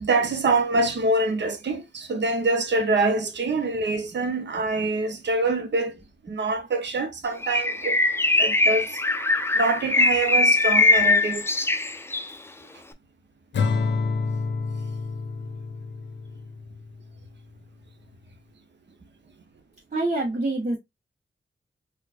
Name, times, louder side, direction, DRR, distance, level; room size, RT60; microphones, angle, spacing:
voice 1, 0.0-6.0 6.2-8.0 8.4-9.0 9.5-11.5, right 2 dB, 75° right, 0.7 m, -25 dB
Bird, 7.4-12.3, left 2 dB, 15° left, 0.4 m, -21 dB
Acoustic guitar / Strum, 13.5-16.9, left 4 dB, 75° left, 0.6 m, -28 dB
voice 2, 19.9-20.8, right 2 dB, 40° right, 0.9 m, -26 dB
4.4 x 2.3 x 2.4 m
wide cardioid pair, 80°, 19 cm